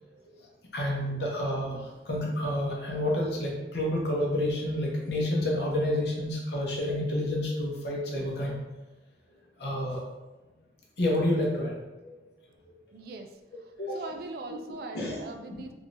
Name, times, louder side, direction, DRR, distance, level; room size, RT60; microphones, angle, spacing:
voice 1, 0.7-8.5 9.6-10.0 11.0-11.7 12.0-12.1 13.8-14.0 14.5-14.6 14.9-15.2 15.5-15.6, left 1 dB, 70° left, -3 dB, 0.9 m, -29 dB
voice 2, 12.9-13.3 13.6-15.7, right 2 dB, 55° right, 6 dB, 0.3 m, -41 dB
3.4 x 2.6 x 3.2 m, 1.1 s
head